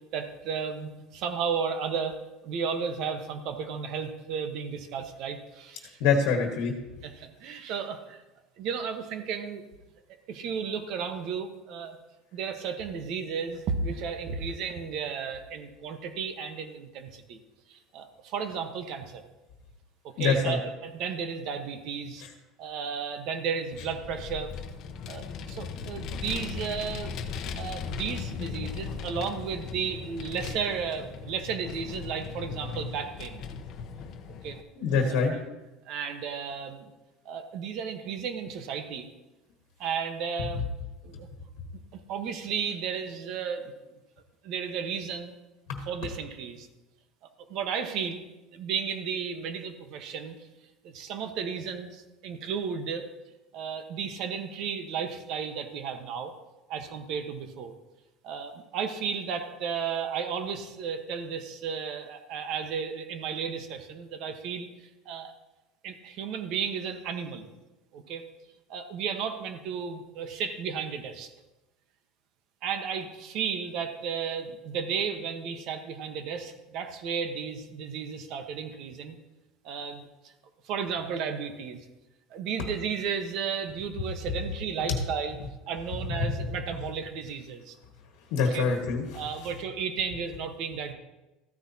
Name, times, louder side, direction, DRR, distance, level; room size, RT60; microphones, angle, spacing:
voice 1, 0.1-2.2 2.4-6.0 7.0-8.2 8.6-9.7 10.3-12.0 12.3-17.4 17.7-19.2 20.0-22.2 22.6-24.5 25.1-27.2 27.5-33.4 34.4-34.6 35.1-35.4 35.8-36.9 37.2-39.1 39.8-40.6 41.0-41.3 41.9-43.7 44.4-45.3 45.9-46.7 47.4-48.2 48.5-50.5 50.8-53.1 53.5-56.3 56.7-57.7 58.2-65.3 65.8-67.5 67.9-68.2 68.7-71.3 72.6-79.2 79.6-80.1 80.6-81.8 82.3-85.4 85.7-87.8 88.4-88.7 89.1-90.9, right 6 dB, 55° right, 7 dB, 1.2 m, -33 dB
voice 2, 6.0-6.7 20.2-20.6 34.8-35.3 45.7-45.8 88.3-89.2, left 5 dB, 70° left, 3 dB, 1.4 m, -25 dB
Vehicle, 23.7-34.6, left 6 dB, 50° left, 0.8 m, -38 dB
14.0 x 10.0 x 2.8 m, 1.0 s
supercardioid pair, 135°, 0 cm